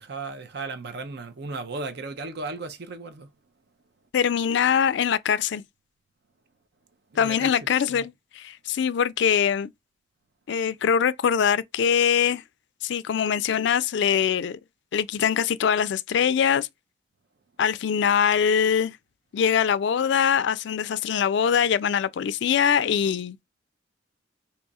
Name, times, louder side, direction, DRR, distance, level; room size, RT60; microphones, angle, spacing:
voice 1, 0.0-3.3 7.1-8.1, right 3 dB, 55° right, 0.6 m, -36 dB
voice 2, 4.1-5.6 7.2-9.7 10.5-12.4 12.8-14.6 14.9-16.7 17.6-19.0 19.3-23.4, left 8 dB, 60° left, 0.3 m, -23 dB
2.8 x 2.4 x 4.0 m
head